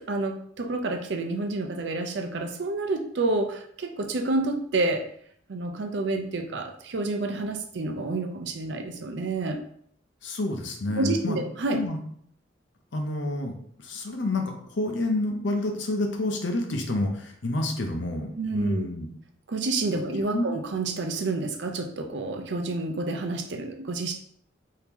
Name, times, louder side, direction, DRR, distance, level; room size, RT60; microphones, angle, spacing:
voice 1, 0.0-5.1 5.5-9.6 11.0-11.8 18.3-18.9 19.5-24.1, right 2 dB, 70° right, 4 dB, 0.5 m, -29 dB
voice 2, 10.2-11.4 11.7-12.0 12.9-13.5 13.8-19.1 19.9-20.0 20.3-20.6, left 2 dB, 75° left, 3 dB, 0.7 m, -29 dB
3.6 x 2.8 x 2.9 m, 0.65 s
head